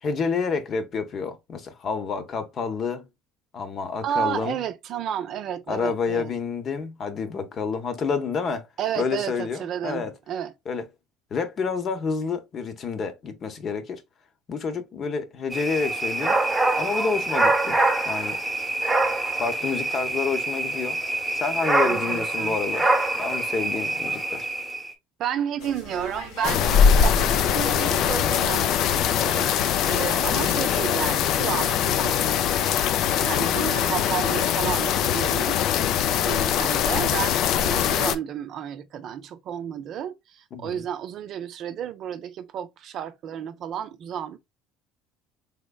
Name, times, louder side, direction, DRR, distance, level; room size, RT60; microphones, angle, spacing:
voice 1, 0.0-3.1 3.5-4.6 5.7-8.7 9.0-10.1 10.7-10.8 11.3-14.0 14.5-16.4 16.8-17.8 18.0-18.4 19.4-21.0 21.3-22.9 23.2-24.5 30.2-30.5 40.5-40.8, left 5 dB, 40° left, 0.7 m, -29 dB
voice 2, 4.0-6.3 8.8-10.5 21.8-22.6 25.2-29.5 29.8-32.8 33.2-35.6 36.1-44.4, right 9 dB, 55° right, 0.5 m, -32 dB
sound 1, 15.5-24.9, right 2 dB, 10° right, 0.9 m, -25 dB
sound 2, 25.6-31.4, left 2 dB, 80° left, 1.4 m, -39 dB
sound 3, 26.4-38.2, left 8 dB, 60° left, 0.4 m, -22 dB
3.5 x 3.1 x 2.2 m
supercardioid pair, 110°, 0 cm